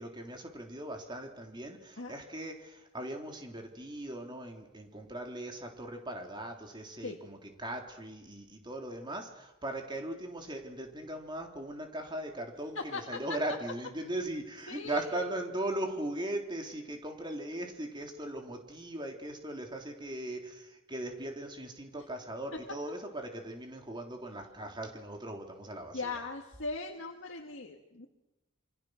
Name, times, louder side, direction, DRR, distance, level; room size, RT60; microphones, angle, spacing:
voice 1, 0.0-26.1, right 1 dB, 20° right, 3 dB, 3.5 m, -39 dB
voice 2, 12.8-13.2 14.7-15.3 21.9-22.0 25.9-28.1, left 3 dB, 65° left, 2 dB, 1.9 m, -39 dB
27.5 x 24.5 x 6.5 m, 0.95 s
head